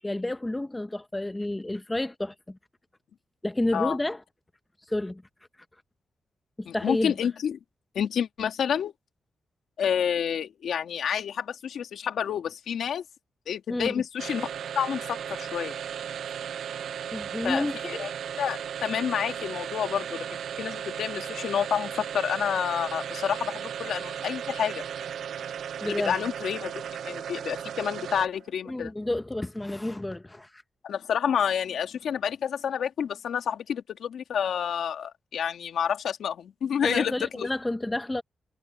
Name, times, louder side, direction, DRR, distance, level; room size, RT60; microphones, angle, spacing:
voice 1, 0.0-2.6 3.4-4.2 4.9-5.2 6.6-7.1 13.7-13.9 17.1-18.0 25.8-26.2 28.7-30.6 36.8-38.2, left 1 dB, 15° left, 0.9 m, -30 dB
voice 2, 6.7-7.6 7.9-8.9 9.8-13.0 13.5-14.5 14.8-15.7 17.4-18.1 18.4-20.3 20.6-24.8 25.8-28.9 30.8-37.5, left 8 dB, 80° left, 2.5 m, -29 dB
sound 1, 14.2-28.5, right 8 dB, 80° right, 0.8 m, -36 dB
cardioid pair, 115°, 0 cm